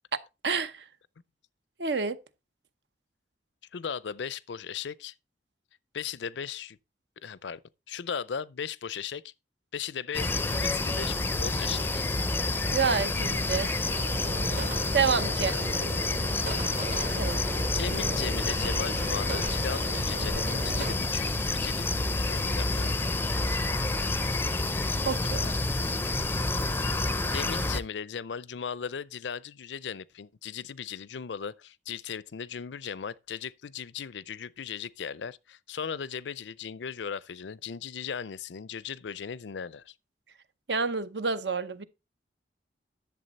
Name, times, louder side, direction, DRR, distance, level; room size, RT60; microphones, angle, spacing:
voice 1, 0.4-0.8 1.8-2.2 12.7-13.7 14.9-15.5 17.2-17.4 25.0-25.5 40.7-41.9, right 5 dB, 70° right, 0.8 m, -28 dB
voice 2, 3.7-5.1 5.9-6.8 7.2-7.6 7.9-9.3 9.7-12.1 15.5-16.1 17.6-21.9 22.2-22.9 24.3-24.6 27.3-39.9, left 7 dB, 80° left, 0.5 m, -37 dB
sound 1, 10.1-27.8, left 2 dB, 10° left, 0.5 m, -29 dB
sound 2, 13.8-21.0, right 2 dB, 50° right, 1.6 m, -38 dB
11.0 x 7.2 x 4.1 m
head